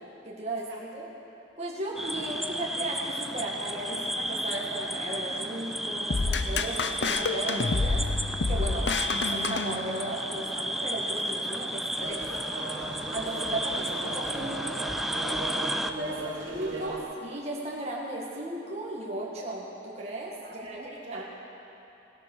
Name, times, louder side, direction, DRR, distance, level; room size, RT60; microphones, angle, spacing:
voice 1, 0.2-1.1 1.6-8.0 8.5-8.9 9.2-12.2 13.1-13.8 14.2-14.3 15.9-16.1 16.5-20.8 21.1-21.2, right 1 dB, 35° right, -4 dB, 1.9 m, -35 dB
sound 1, 2.0-15.9, equal, ahead, 0.4 m, -33 dB
sound 2, 6.1-10.3, left 3 dB, 65° left, 0.7 m, -28 dB
sound 3, 12.0-17.0, right 2 dB, 90° right, 2.7 m, -38 dB
voice 2, 13.1-14.7 15.7-16.4 16.7-17.1 20.4-21.2, right 1 dB, 60° right, -5 dB, 2.5 m, -43 dB
17.5 x 12.0 x 6.3 m, 2.9 s
head